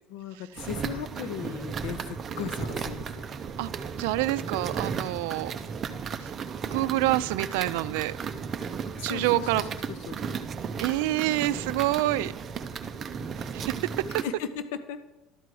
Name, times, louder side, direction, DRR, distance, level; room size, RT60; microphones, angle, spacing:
voice 1, 0.1-3.2 9.0-10.4 14.2-15.0, left 8 dB, 85° left, 11 dB, 0.7 m, -37 dB
sound 1, 0.6-14.2, right 6 dB, 20° right, 0.5 m, -35 dB
voice 2, 4.0-5.5 6.7-8.1 9.0-9.7 10.8-12.3 13.5-13.7, right 17 dB, 85° right, 15 dB, 0.4 m, -27 dB
12.0 x 4.7 x 7.6 m, 1.1 s
cardioid pair, 180°, 0 cm